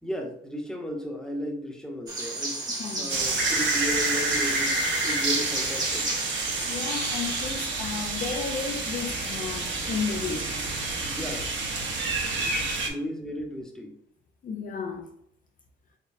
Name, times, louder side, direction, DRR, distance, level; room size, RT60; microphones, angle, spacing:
voice 1, 0.0-2.7 3.0-6.1 10.3-10.5 11.0-11.5 12.4-12.5 12.9-14.0, left 1 dB, 5° left, 1 dB, 0.9 m, -35 dB
sound 1, 2.1-7.4, right 2 dB, 20° right, 1.1 m, -34 dB
voice 2, 2.8-3.2 6.7-10.5 11.0-11.2 11.7-12.3 12.6-12.7 14.4-15.1, left 6 dB, 45° left, 2 dB, 0.5 m, -34 dB
sound 2, 3.1-12.9, right 3 dB, 65° right, 1.1 m, -28 dB
4.0 x 3.3 x 2.6 m, 0.70 s
cardioid pair, 90°, 20 cm